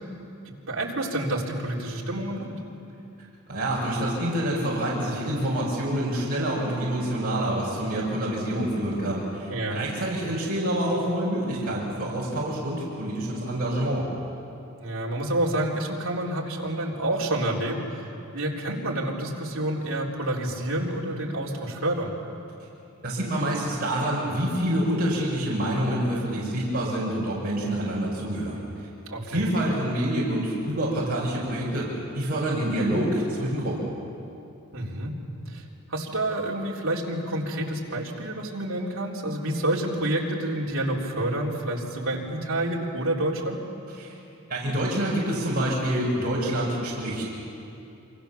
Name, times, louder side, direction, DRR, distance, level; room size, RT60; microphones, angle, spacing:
voice 1, 0.5-2.6 9.5-9.8 14.8-18.0 18.3-22.1 29.1-29.4 34.7-35.1 35.5-35.6 35.9-43.6, right 1 dB, 60° right, -3 dB, 3.8 m, -28 dB
voice 2, 3.5-14.1 23.0-28.6 29.2-33.9 44.0-44.1 44.5-47.3, right 1 dB, 45° right, -6 dB, 5.5 m, -27 dB
28.5 x 25.0 x 7.1 m, 2.7 s
head